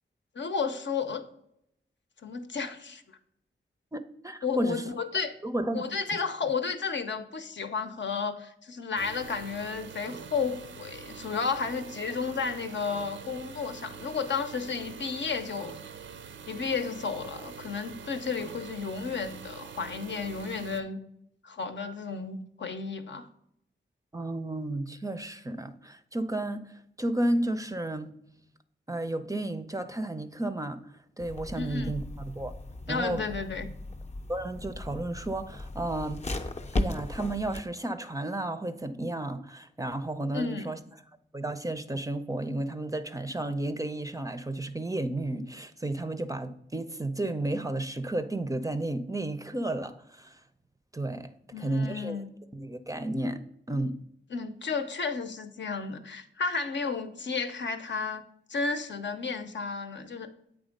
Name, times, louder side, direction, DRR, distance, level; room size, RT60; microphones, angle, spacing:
voice 1, 0.4-1.2 2.2-3.0 4.4-5.4 5.7-15.7 16.5-21.0 21.4-23.3 31.5-31.9 32.9-33.7 40.3-40.7 51.5-52.2 54.3-58.2 58.5-60.3, left 5 dB, 65° left, 0.7 m, -32 dB
voice 2, 3.9-4.9 5.4-5.8 24.1-28.1 28.9-32.5 32.9-33.2 34.3-36.4 36.7-40.8 41.3-50.4 50.9-52.2 52.5-54.0, right 1 dB, 15° right, 0.4 m, -32 dB
sound 1, 9.0-20.8, right 7 dB, 70° right, 0.5 m, -45 dB
sound 2, 31.2-37.6, left 2 dB, 35° left, 0.6 m, -36 dB
8.0 x 3.5 x 5.1 m
cardioid pair, 65°, 20 cm